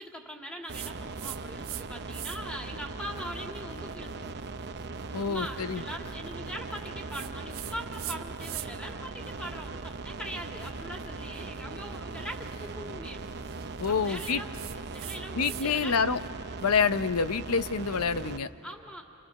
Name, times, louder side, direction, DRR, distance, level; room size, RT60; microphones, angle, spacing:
voice 1, 0.0-4.3 5.2-13.3 13.9-14.6 14.9-16.0 18.6-19.0, equal, 5° left, 1 dB, 2.2 m, -41 dB
sound 1, 0.7-18.4, right 3 dB, 50° right, 0.8 m, -39 dB
sound 2, 0.7-1.8 2.1-2.6 3.1-8.9 9.2-15.7 16.0-18.2, right 13 dB, 70° right, 1.2 m, -45 dB
voice 2, 5.1-5.8 13.8-14.4 15.3-16.2 16.6-18.5, left 5 dB, 80° left, 12 dB, 0.8 m, -27 dB
29.0 x 27.0 x 6.6 m, 2.9 s
head